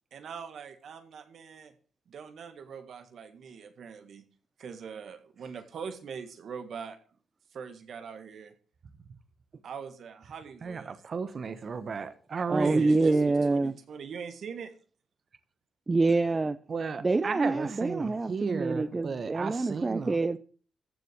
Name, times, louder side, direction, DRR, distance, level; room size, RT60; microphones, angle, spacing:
voice 1, 0.1-1.7 2.1-4.2 4.6-7.0 7.5-8.5 9.6-11.0 12.5-14.7, right 6 dB, 70° right, 1.9 m, -42 dB
voice 2, 10.6-12.9 16.7-20.2, right 5 dB, 50° right, 1.2 m, -34 dB
voice 3, 12.5-13.8 15.9-16.6 17.0-20.4, right 3 dB, 30° right, 0.6 m, -26 dB
14.5 x 6.8 x 6.2 m
cardioid pair, 80°, 0 cm